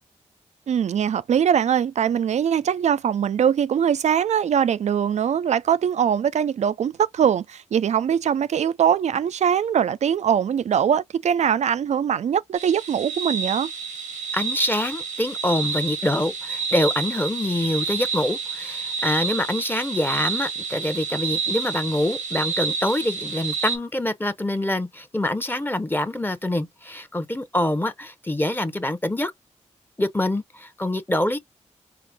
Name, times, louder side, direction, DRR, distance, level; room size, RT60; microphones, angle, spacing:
voice 1, 0.7-13.7, right 8 dB, 65° right, 0.4 m, -22 dB
sound 1, 12.6-23.8, right 5 dB, 80° right, 1.1 m, -29 dB
voice 2, 14.3-29.3 30.0-31.4, left 1 dB, 15° left, 0.8 m, -25 dB
4.7 x 2.1 x 3.5 m
cardioid pair, 45°, 13 cm